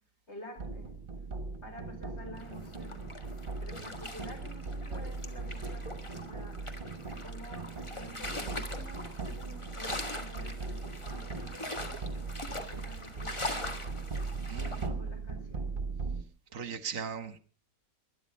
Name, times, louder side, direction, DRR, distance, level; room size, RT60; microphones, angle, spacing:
voice 1, 0.3-0.9 1.6-3.1 3.6-6.6 7.2-12.2 12.5-14.0 14.6-15.7, left 1 dB, 40° left, 5.3 m, -50 dB
sound 1, 0.6-16.2, right 4 dB, 35° right, 1.4 m, -39 dB
sound 2, 2.4-14.9, left 2 dB, 20° left, 1.6 m, -42 dB
voice 2, 14.5-14.8 16.5-17.4, right 6 dB, 55° right, 1.3 m, -38 dB
20.5 x 11.0 x 5.5 m
omnidirectional pair, 1.8 m